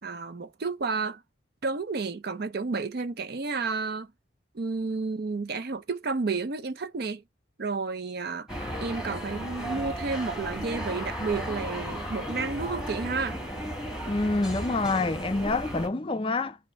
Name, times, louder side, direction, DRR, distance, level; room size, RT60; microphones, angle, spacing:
voice 1, 0.0-1.2 1.6-4.1 4.5-7.2 7.6-8.5 8.8-13.4, right 4 dB, 50° right, 0.5 m, -31 dB
sound 1, 8.5-15.9, equal, ahead, 1.7 m, -35 dB
voice 2, 14.1-16.6, left 3 dB, 25° left, 0.4 m, -27 dB
5.8 x 2.1 x 4.2 m
head